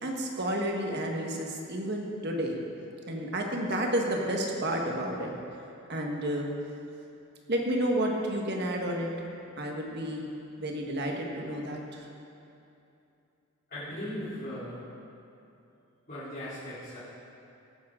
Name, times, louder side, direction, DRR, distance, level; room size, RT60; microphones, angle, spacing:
voice 1, 0.0-2.6 3.1-5.3 5.9-6.5 7.5-9.1 9.6-10.3 10.6-12.0, right 1 dB, 50° right, 0 dB, 1.5 m, -31 dB
voice 2, 13.7-14.8 16.1-17.0, equal, 45° left, -15 dB, 3.5 m, -38 dB
17.5 x 9.8 x 3.8 m, 2.7 s
head